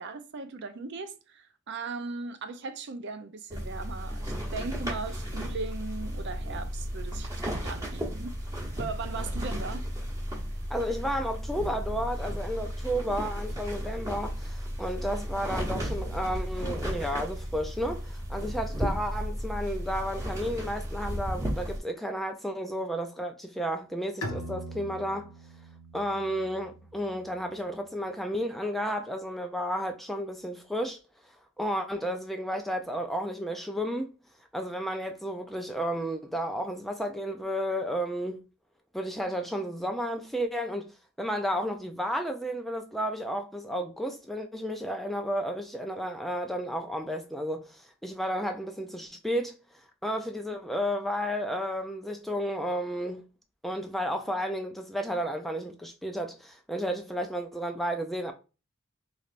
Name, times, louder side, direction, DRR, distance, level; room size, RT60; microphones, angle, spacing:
voice 1, 0.0-8.4 8.8-9.9, right 4 dB, 55° right, 0.5 m, -38 dB
sound 1, 3.5-21.8, equal, 15° right, 1.0 m, -34 dB
voice 2, 10.7-25.3 25.9-31.0 31.6-34.1 34.5-38.4 38.9-40.9 41.2-49.5 50.0-53.2 53.6-58.3, equal, ahead, 0.3 m, -32 dB
Bowed string instrument, 24.2-27.7, equal, 85° left, 0.7 m, -41 dB
4.2 x 3.2 x 2.5 m
head